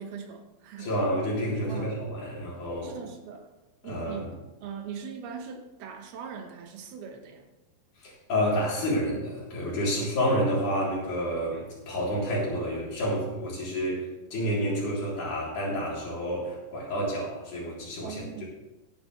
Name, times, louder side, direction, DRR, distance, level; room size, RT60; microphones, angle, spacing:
voice 1, 0.0-0.9 1.7-2.0 2.8-3.5 3.8-4.3 4.6-7.4 9.9-10.4 18.0-18.4, right 6 dB, 75° right, 4 dB, 3.0 m, -40 dB
voice 2, 0.8-2.9 3.8-4.3 8.0-18.4, equal, 55° left, -5 dB, 4.7 m, -29 dB
16.5 x 10.5 x 3.2 m, 1.0 s
omnidirectional pair, 4.5 m